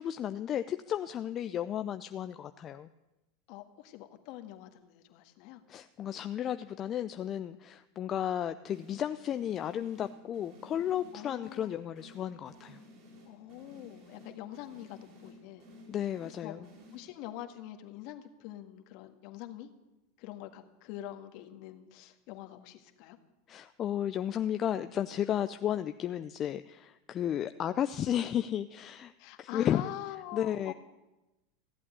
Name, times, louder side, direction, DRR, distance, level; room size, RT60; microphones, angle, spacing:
voice 1, 0.0-2.9 5.7-12.8 15.9-16.6 23.5-29.1 29.4-29.9 30.3-30.7, left 10 dB, 35° left, 10 dB, 0.5 m, -33 dB
voice 2, 3.5-5.6 11.1-11.8 13.3-15.7 16.2-16.5 16.9-19.7 20.2-23.2 29.2-30.7, left 13 dB, 60° left, 6 dB, 1.7 m, -45 dB
sound 1, 8.6-17.4, left 1 dB, 55° right, 5.4 m, -55 dB
15.0 x 8.5 x 9.8 m, 1.0 s
hypercardioid pair, 105°, 0 cm